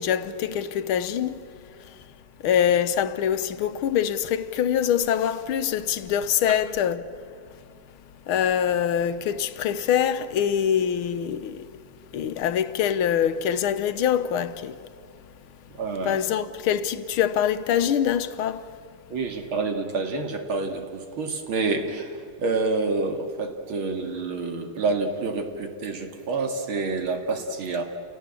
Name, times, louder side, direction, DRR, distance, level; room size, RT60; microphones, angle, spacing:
voice 1, 0.0-1.4 2.4-7.1 8.3-11.6 12.1-14.8 16.0-18.7, left 9 dB, 80° left, 1.7 m, -24 dB
voice 2, 15.7-16.2 19.1-27.8, right 3 dB, 75° right, 2.9 m, -28 dB
29.5 x 18.0 x 9.0 m
omnidirectional pair, 2.3 m